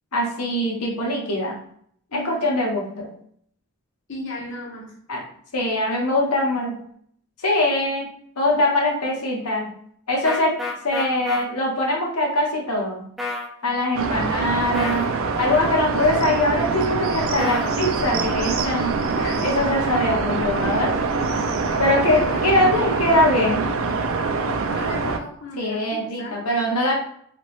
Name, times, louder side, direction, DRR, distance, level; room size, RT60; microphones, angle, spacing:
voice 1, 0.1-1.6 2.1-3.1 5.1-5.2 5.5-6.8 7.4-8.1 8.4-9.7 10.1-10.6 10.8-13.1 13.6-15.0 15.4-19.1 19.4-20.9 21.8-23.6 25.6-26.9, left 1 dB, 90° left, -1 dB, 1.0 m, -22 dB
voice 2, 2.1-2.5 4.1-5.0 19.2-19.5 20.6-21.0 22.1-23.2 24.7-26.9, left 1 dB, 55° left, -3 dB, 0.8 m, -36 dB
sound 1, 10.2-11.4 13.2-13.5 14.7-15.1 17.4-17.7, left 3 dB, ahead, 0.4 m, -28 dB
sound 2, 14.0-25.2, right 4 dB, 65° right, 0.4 m, -24 dB
3.4 x 2.9 x 3.1 m, 0.65 s
head